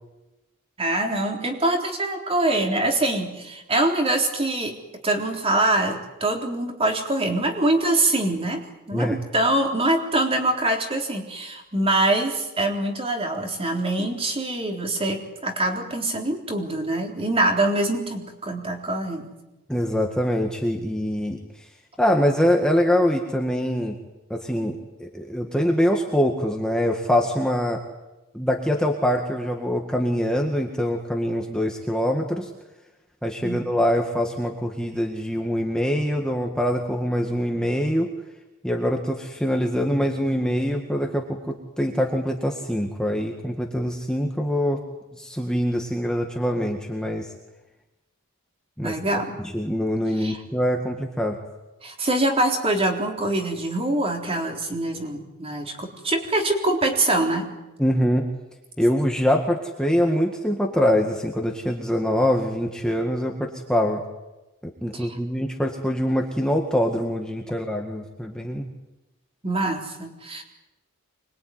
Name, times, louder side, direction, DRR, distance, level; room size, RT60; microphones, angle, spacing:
voice 1, 0.8-4.8 5.0-8.6 8.9-19.3 33.4-33.6 48.8-49.4 50.2-50.4 51.8-57.5 64.9-65.1 69.4-70.4, right 2 dB, 25° right, 3 dB, 3.8 m, -24 dB
voice 2, 19.7-21.7 22.0-24.0 24.3-27.8 28.3-32.5 33.2-38.1 38.6-44.8 45.1-47.3 48.8-48.9 49.4-51.4 57.8-58.3 58.8-64.0 64.6-68.7, equal, 5° left, 1 dB, 1.9 m, -24 dB
25.5 x 22.0 x 9.5 m, 1.0 s
head